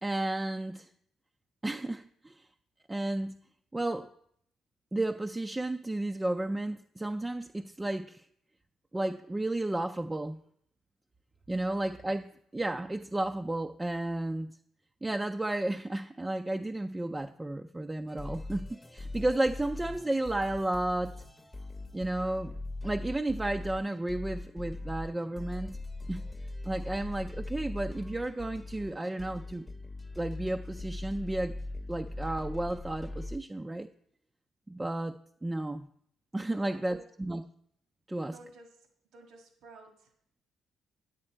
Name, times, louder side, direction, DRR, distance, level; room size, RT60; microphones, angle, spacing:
voice 1, 0.0-0.9 1.6-2.3 2.9-3.4 3.7-4.1 4.9-8.2 8.9-10.4 11.5-14.5 15.0-21.1 21.9-22.5 22.8-25.8 26.1-26.2 26.7-29.7 30.2-31.5 31.9-33.9 34.7-35.2 35.4-35.9 36.3-37.4 38.1-38.3, right 1 dB, 15° right, 5 dB, 0.4 m, -32 dB
sound 1, 18.1-33.4, left 2 dB, 10° left, 0.8 m, -41 dB
voice 2, 36.5-37.0 38.3-40.1, right 2 dB, 80° right, 5 dB, 1.6 m, -54 dB
9.5 x 8.8 x 4.4 m, 0.68 s
cardioid pair, 105°, 0 cm